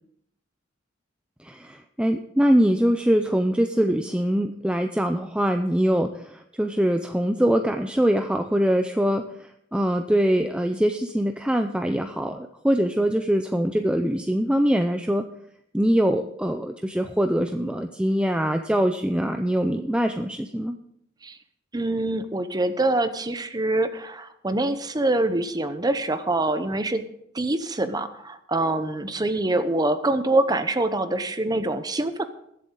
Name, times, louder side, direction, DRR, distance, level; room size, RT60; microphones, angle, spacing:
voice 1, 1.4-15.3 15.7-20.8, equal, 5° right, 6 dB, 0.5 m, -23 dB
voice 2, 21.7-27.0 27.3-32.2, right 2 dB, 20° right, 10 dB, 0.8 m, -25 dB
22.0 x 7.8 x 3.9 m, 0.74 s
head